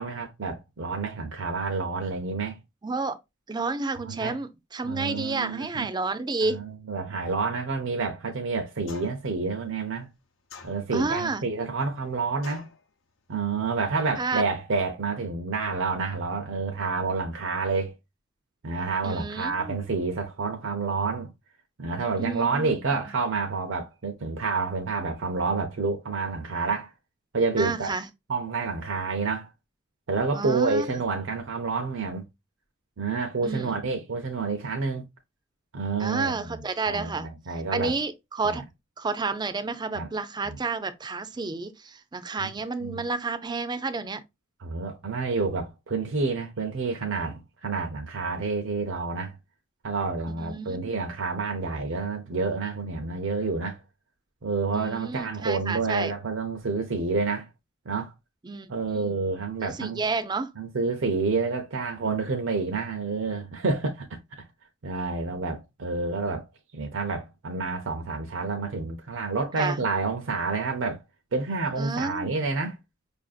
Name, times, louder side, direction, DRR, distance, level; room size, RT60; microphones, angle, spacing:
voice 1, 0.0-2.6 4.0-4.4 4.8-5.9 6.5-10.1 10.6-12.7 13.3-17.9 18.6-21.3 21.8-26.9 27.3-27.9 28.3-29.5 30.1-32.3 33.0-35.1 35.7-38.0 38.4-38.6 39.9-40.1 40.4-40.6 42.4-42.5 42.8-43.1 44.6-49.3 49.8-53.8 54.4-57.5 57.9-58.1 58.7-60.0 60.6-64.4 64.8-66.5 66.7-71.0 71.3-72.8, right 4 dB, 65° right, 0.6 m, -29 dB
voice 2, 2.8-3.2 3.5-6.6 10.9-11.4 14.2-14.4 19.0-19.8 22.2-22.7 27.5-28.1 30.3-30.9 33.4-33.8 36.0-37.3 37.7-38.6 39.0-44.2 50.4-51.0 54.7-56.1 58.4-59.2 59.6-60.5 69.6-69.8 71.8-72.4, right 3 dB, 20° right, 0.4 m, -30 dB
sound 1, 8.9-9.3 10.5-11.2 12.4-12.8, left 3 dB, 75° left, 0.7 m, -44 dB
5.1 x 2.5 x 2.4 m
head